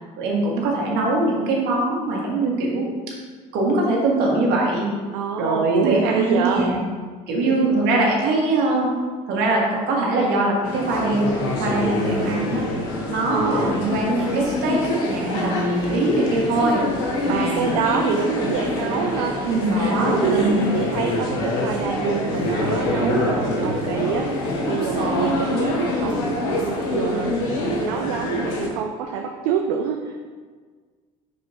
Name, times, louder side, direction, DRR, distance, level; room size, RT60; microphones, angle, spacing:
voice 1, 0.2-2.9 3.5-4.9 5.4-6.8 7.3-8.9 9.3-11.3 11.6-12.6 13.1-16.8 17.2-17.7 19.4-20.7 23.0-23.1 24.9-25.3, right 2 dB, 65° right, -3 dB, 1.8 m, -22 dB
voice 2, 5.1-6.7 7.4-7.7 13.3-13.8 17.3-19.4 19.7-30.2, right 7 dB, 80° right, 3 dB, 0.5 m, -26 dB
sound 1, 10.6-28.7, left 1 dB, 75° left, 1.3 m, -25 dB
6.2 x 5.5 x 2.9 m, 1.5 s
hypercardioid pair, 75°, 18 cm